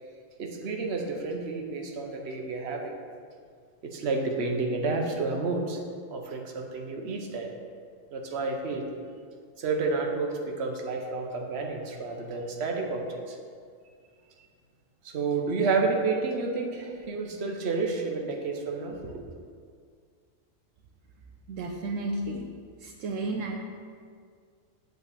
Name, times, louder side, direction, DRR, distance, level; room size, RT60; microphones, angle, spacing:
voice 1, 0.4-2.9 3.8-5.8 6.1-7.5 8.1-8.9 9.6-13.4 15.0-19.2, right 3 dB, 55° right, 2 dB, 1.1 m, -30 dB
voice 2, 21.5-22.5 22.8-23.6, right 2 dB, 75° right, 1 dB, 1.0 m, -32 dB
8.4 x 3.9 x 6.7 m, 2.1 s
omnidirectional pair, 1.4 m